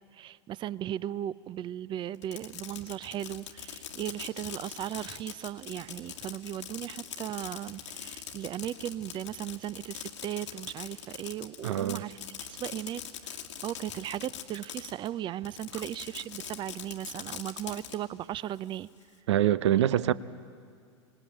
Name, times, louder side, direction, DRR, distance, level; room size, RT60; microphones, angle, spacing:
voice 1, 0.1-18.9, right 12 dB, 30° right, 0.6 m, -37 dB
Fireworks, 2.1-15.1 15.4-18.0, left 9 dB, 80° left, 1.9 m, -42 dB
voice 2, 11.6-12.0 19.3-20.1, right 11 dB, 75° right, 0.7 m, -24 dB
25.5 x 19.5 x 8.8 m
hypercardioid pair, 100°, 15 cm